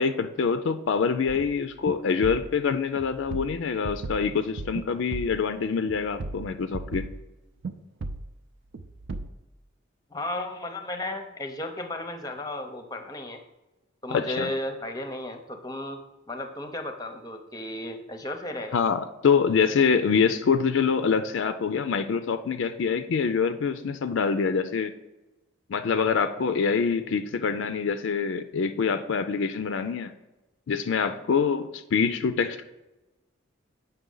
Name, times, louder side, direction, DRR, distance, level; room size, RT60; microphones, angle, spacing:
voice 1, 0.0-7.0 14.1-14.5 18.7-24.9 25.7-30.1 30.7-32.6, left 5 dB, 65° left, 10 dB, 0.4 m, -25 dB
sound 1, 1.3-1.6 1.8-2.0 2.2-2.5 3.0-4.9 5.1-5.4 5.8-7.2 7.6-7.7 8.0-8.3 8.7-9.3, right 2 dB, 60° right, 0.5 m, -36 dB
voice 2, 10.1-13.4 14.0-16.0 16.3-18.8, left 1 dB, 20° left, 7 dB, 0.6 m, -34 dB
8.1 x 5.7 x 3.8 m, 1.1 s
head